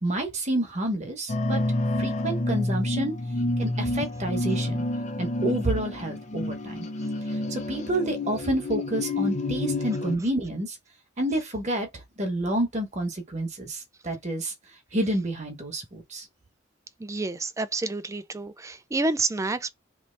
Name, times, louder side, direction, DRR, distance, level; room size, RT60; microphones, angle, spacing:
voice 1, 0.0-1.6 2.0-3.1 3.6-4.8 5.2-6.9 7.3-10.8 11.2-14.5 14.9-16.3, right 1 dB, 35° right, 1.1 m, -29 dB
sound 1, 1.3-10.2, left 2 dB, 40° left, 0.6 m, -29 dB
voice 2, 17.0-19.7, right 3 dB, 15° right, 0.4 m, -29 dB
3.2 x 2.9 x 3.9 m
head